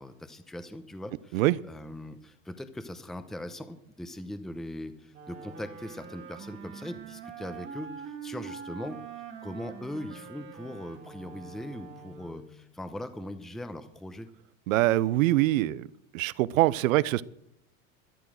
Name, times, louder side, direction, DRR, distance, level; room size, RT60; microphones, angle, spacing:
voice 1, 0.0-14.3, left 1 dB, ahead, 10 dB, 0.8 m, -40 dB
Wind instrument woodwind instrument, 5.1-12.6, right 6 dB, 30° right, 1.9 m, -44 dB
voice 2, 14.7-15.9 16.1-17.2, right 16 dB, 85° right, 20 dB, 0.7 m, -24 dB
12.5 x 11.5 x 6.3 m, 0.76 s
supercardioid pair, 125°, 40 cm